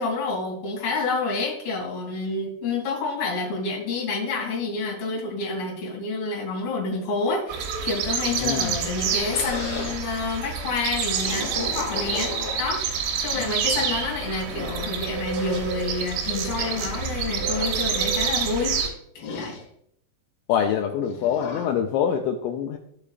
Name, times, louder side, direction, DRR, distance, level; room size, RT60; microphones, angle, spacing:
voice 1, 0.0-18.8 19.1-19.6, left 3 dB, 35° left, -2 dB, 2.8 m, -28 dB
sound 1, 7.5-18.9, right 6 dB, 85° right, 3.5 m, -28 dB
voice 2, 8.3-8.8 13.4-13.5 20.5-22.8, left 8 dB, 85° left, 3 dB, 2.7 m, -25 dB
sound 2, 8.8-10.0 11.0-13.0 13.7-13.8 14.3-14.8 15.3-15.8 16.5-17.0 17.3-17.8 19.2-19.6 21.0-21.7, left 4 dB, 65° left, 2.5 m, -36 dB
14.5 x 5.0 x 2.4 m, 0.70 s
omnidirectional pair, 5.6 m